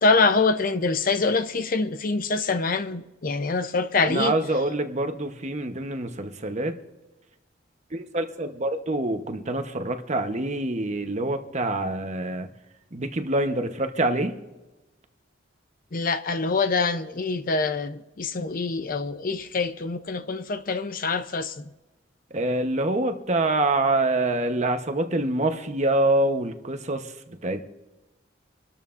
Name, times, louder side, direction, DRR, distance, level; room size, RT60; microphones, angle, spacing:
voice 1, 0.0-4.3 15.9-21.6, left 4 dB, 45° left, 0.7 m, -25 dB
voice 2, 4.0-6.7 7.9-12.5 12.9-14.3 22.3-27.6, right 2 dB, 35° right, 1.0 m, -26 dB
25.5 x 12.5 x 2.6 m
head